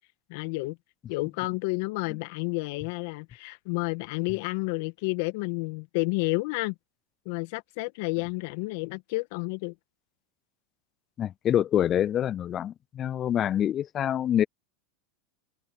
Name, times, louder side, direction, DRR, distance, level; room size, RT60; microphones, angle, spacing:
voice 1, 0.3-0.8 1.1-6.7 7.2-9.7, left 26 dB, 60° left, 1.6 m, -30 dB
voice 2, 11.2-14.4, left 10 dB, 35° left, 0.3 m, -26 dB
hypercardioid pair, 105°, 0 cm